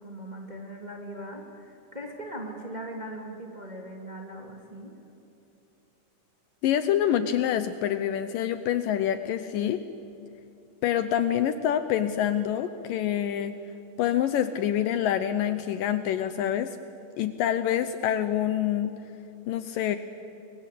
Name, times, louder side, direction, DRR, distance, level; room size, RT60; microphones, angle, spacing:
voice 1, 0.0-4.9, right 1 dB, 15° right, 2 dB, 2.3 m, -40 dB
voice 2, 6.6-9.8 10.8-13.6 14.0-16.8 17.2-18.9 19.5-20.0, left 10 dB, 75° left, 11 dB, 2.3 m, -26 dB
29.5 x 22.5 x 8.5 m, 2.8 s
omnidirectional pair, 4.4 m